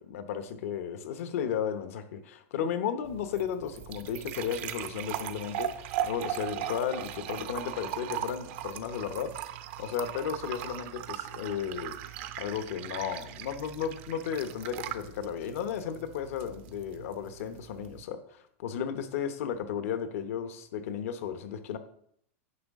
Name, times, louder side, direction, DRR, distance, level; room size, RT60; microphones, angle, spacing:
voice 1, 0.1-9.3 9.8-12.0 12.4-21.8, left 8 dB, 75° left, 10 dB, 0.9 m, -34 dB
sound 1, 3.0-18.0, right 11 dB, 55° right, 0.6 m, -39 dB
9.5 x 5.7 x 3.6 m, 0.69 s
supercardioid pair, 145°, 8 cm